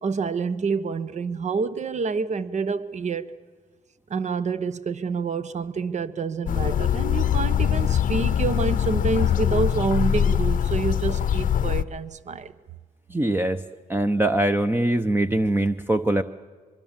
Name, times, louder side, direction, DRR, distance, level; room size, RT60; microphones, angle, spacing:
voice 1, 0.0-3.3 4.1-12.5, right 5 dB, 50° right, 1.0 m, -27 dB
sound 1, 6.5-11.8, left 9 dB, 60° left, 0.7 m, -22 dB
voice 2, 13.1-13.6 13.9-16.2, right 1 dB, 15° right, 0.8 m, -22 dB
23.5 x 23.0 x 7.3 m
cardioid pair, 75°, 15 cm